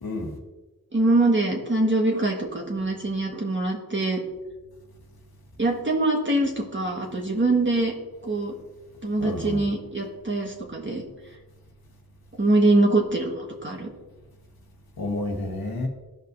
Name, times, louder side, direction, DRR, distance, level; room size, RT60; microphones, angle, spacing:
voice 1, 0.0-0.4 9.2-9.7 15.0-15.9, left 2 dB, 80° left, 1 dB, 1.2 m, -30 dB
voice 2, 0.9-4.2 5.6-7.9 8.2-8.5 9.0-11.0 12.4-13.9, right 2 dB, 30° right, -1 dB, 1.4 m, -23 dB
15.0 x 5.2 x 2.6 m, 1.2 s
wide cardioid pair, 60°, 36 cm